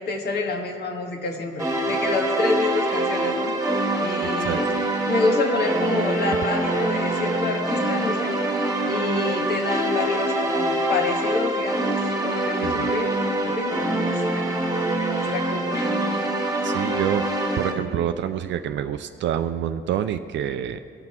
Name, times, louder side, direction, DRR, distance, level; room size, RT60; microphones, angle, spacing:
voice 1, 0.0-3.5 4.0-4.7 5.1-8.3 8.9-14.5 15.2-15.9, left 3 dB, 55° left, 2 dB, 1.6 m, -27 dB
sound 1, 1.6-17.7, right 1 dB, 15° right, 1.6 m, -25 dB
voice 2, 4.2-4.6 12.6-12.9 16.6-17.3 17.6-20.8, right 10 dB, 65° right, 9 dB, 0.4 m, -27 dB
17.0 x 6.0 x 4.4 m, 2.6 s
cardioid pair, 90°, 20 cm